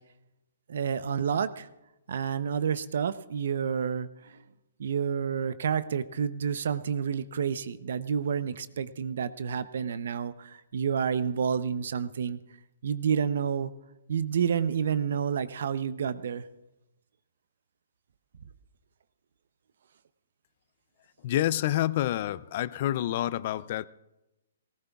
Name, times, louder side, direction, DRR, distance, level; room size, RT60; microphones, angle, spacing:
voice 1, 0.7-1.7 2.1-4.4 4.8-12.4 12.8-13.7 14.1-16.4, right 7 dB, 65° right, 0.7 m, -29 dB
voice 2, 21.2-23.9, left 13 dB, 40° left, 0.4 m, -28 dB
19.0 x 18.0 x 2.4 m
hypercardioid pair, 160°, 0 cm